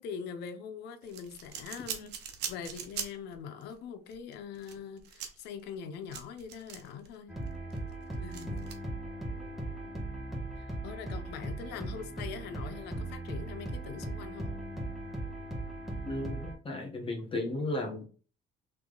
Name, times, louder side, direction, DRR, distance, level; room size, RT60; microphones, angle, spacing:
voice 1, 0.0-7.3 8.2-8.7 10.6-14.5, left 7 dB, 85° left, 0.6 m, -43 dB
sound 1, 1.0-3.3 3.6-3.7 4.1-7.1 7.5-8.7, right 8 dB, 80° right, 0.8 m, -41 dB
sound 2, 7.3-16.5, right 2 dB, ahead, 1.3 m, -38 dB
voice 2, 16.1-18.1, left 2 dB, 30° left, 1.0 m, -34 dB
3.4 x 3.0 x 3.8 m
cardioid pair, 110°, 17 cm